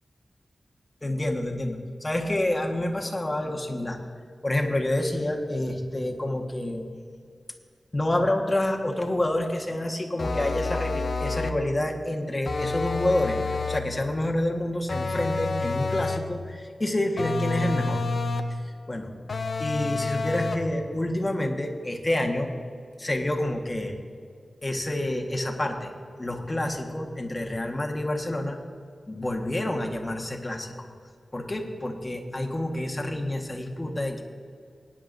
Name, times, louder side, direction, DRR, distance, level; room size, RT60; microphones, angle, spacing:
voice 1, 1.0-4.0 4.4-6.8 7.9-18.0 18.6-19.1 19.6-22.5 23.0-23.9 24.6-25.9 26.2-28.6 29.1-30.7 31.3-34.2, left 1 dB, 20° left, 1 dB, 1.4 m, -28 dB
sound 1, 10.2-11.7 12.5-14.0 14.9-16.4 17.2-18.6 19.3-20.7, left 3 dB, 60° left, 0.8 m, -29 dB
21.0 x 9.9 x 2.6 m, 2.2 s
wide cardioid pair, 90°, 0 cm